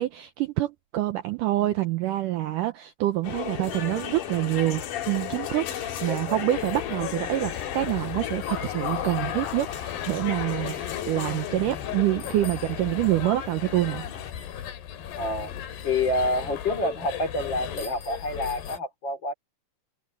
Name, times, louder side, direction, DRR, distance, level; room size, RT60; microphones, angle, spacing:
voice 1, 0.0-14.1, right 15 dB, 80° right, 2.0 m, -27 dB
sound 1, 3.2-14.3, left 10 dB, 60° left, 2.9 m, -35 dB
voice 2, 6.1-6.4 15.2-15.5 15.8-19.3, left 1 dB, 30° left, 3.2 m, -28 dB
sound 2, 6.5-18.8, left 10 dB, 90° left, 4.0 m, -36 dB
omnidirectional pair, 4.6 m